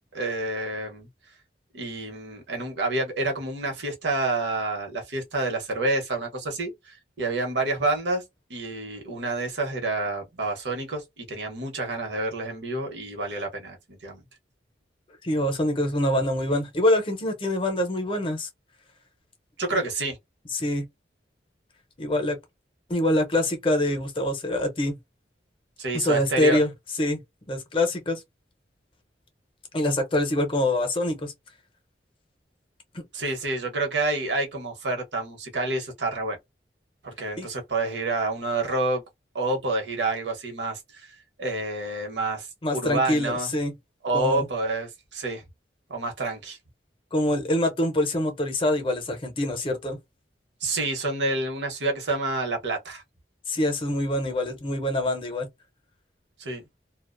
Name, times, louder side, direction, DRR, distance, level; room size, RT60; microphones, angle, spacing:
voice 1, 0.1-1.1 1.7-8.2 8.5-14.2 19.6-20.2 25.8-26.6 33.1-36.4 37.0-39.0 39.3-41.1 41.4-42.5 42.7-43.5 44.0-45.4 45.9-46.6 50.6-53.0 56.4-56.6, right 2 dB, 85° right, 0.9 m, -28 dB
voice 2, 15.2-18.5 19.7-19.8 20.5-20.8 22.0-22.4 22.9-25.0 25.9-26.7 27.0-27.2 27.5-28.2 29.7-31.3 32.9-33.0 37.4-37.5 42.6-43.7 44.1-44.5 47.1-50.0 53.5-55.5, left 1 dB, 30° left, 0.6 m, -25 dB
2.4 x 2.1 x 2.4 m
head